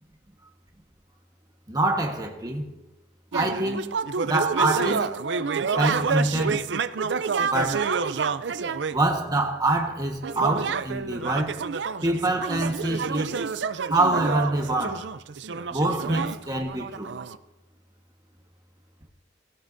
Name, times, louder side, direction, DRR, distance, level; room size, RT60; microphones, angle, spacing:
voice 1, 1.7-2.7 3.3-3.9 4.2-5.1 5.7-6.6 7.4-7.9 8.9-11.6 12.0-13.3 13.9-15.0 15.7-17.1, right 2 dB, 20° right, 1.3 m, -25 dB
sound 1, 3.3-9.0 10.2-17.4, right 5 dB, 65° right, 0.5 m, -28 dB
18.5 x 17.0 x 2.7 m
head